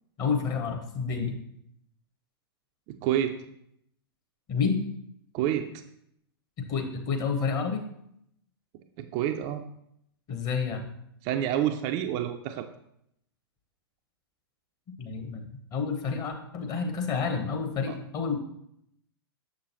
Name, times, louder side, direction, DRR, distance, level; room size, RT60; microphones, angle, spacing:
voice 1, 0.2-1.4 4.5-4.8 6.6-7.8 10.3-10.8 15.0-18.4, left 5 dB, 30° left, 4 dB, 1.0 m, -29 dB
voice 2, 2.9-3.4 5.3-5.8 9.0-9.6 11.2-12.7 17.9-18.0, right 11 dB, 30° right, 6 dB, 0.4 m, -28 dB
6.6 x 6.2 x 3.0 m, 0.74 s
figure-of-eight pair, 105°, 13 cm